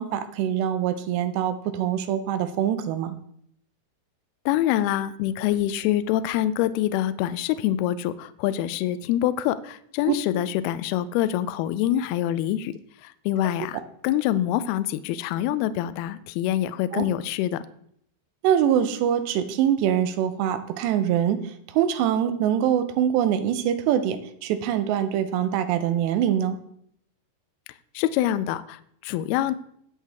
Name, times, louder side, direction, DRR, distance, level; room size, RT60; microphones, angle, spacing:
voice 1, 0.0-3.2 10.1-10.2 16.9-17.1 18.4-21.4 21.7-26.6, right 10 dB, 80° right, 10 dB, 2.9 m, -24 dB
voice 2, 4.5-12.7 13.0-17.6 28.0-29.5, left 12 dB, 90° left, 14 dB, 2.2 m, -25 dB
18.5 x 6.5 x 3.5 m, 0.69 s
omnidirectional pair, 5.2 m